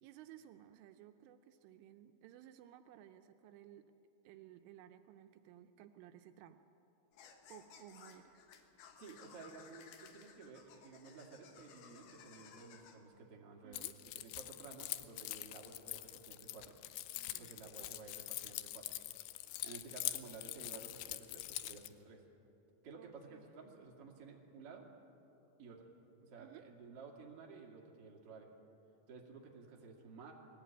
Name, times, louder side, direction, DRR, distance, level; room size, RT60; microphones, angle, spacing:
voice 1, 0.0-3.9 4.2-6.6 7.5-8.4 10.6-10.8 13.6-14.0 17.1-17.9 22.9-23.5 26.4-26.6, right 11 dB, 80° right, 8 dB, 3.1 m, -57 dB
sound 1, 7.1-13.0, left 7 dB, 65° left, 2.7 m, -59 dB
voice 2, 9.0-16.8 17.4-18.9 19.6-22.2 22.8-24.9 25.6-25.9 26.2-28.5 29.1-30.3, right 4 dB, 40° right, -1 dB, 2.4 m, -54 dB
Keys jangling, 13.7-21.9, left 16 dB, 85° left, 2.5 m, -44 dB
20.0 x 16.0 x 9.0 m, 2.9 s
omnidirectional pair, 5.8 m